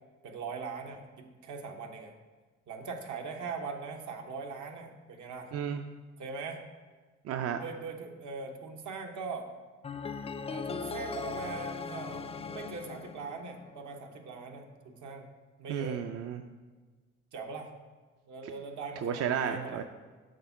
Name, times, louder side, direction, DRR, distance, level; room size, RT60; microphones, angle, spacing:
voice 1, 0.2-2.1 2.7-5.5 6.2-6.6 7.6-9.5 10.5-15.3 15.6-16.0 17.3-17.7 18.3-19.8, right 4 dB, 75° right, 3 dB, 1.0 m, -41 dB
voice 2, 7.2-7.6 15.7-16.4 19.0-19.8, right 8 dB, 55° right, 7 dB, 0.4 m, -32 dB
sound 1, 9.8-13.9, left 5 dB, 20° left, 0.3 m, -39 dB
6.7 x 3.6 x 5.7 m, 1.3 s
cardioid pair, 90°, 30 cm